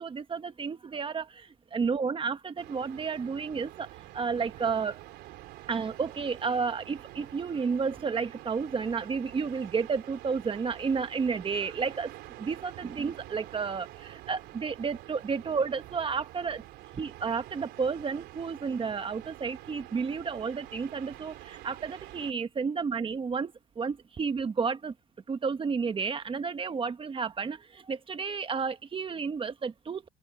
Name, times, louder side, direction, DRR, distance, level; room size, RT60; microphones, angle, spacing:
voice 1, 0.0-5.0 5.7-12.1 12.4-16.6 17.0-24.9 25.3-30.1, right 5 dB, 30° right, 1.3 m, -31 dB
sound 1, 2.6-22.3, right 16 dB, 85° right, 3.6 m, -47 dB
open air
cardioid pair, 110°, 17 cm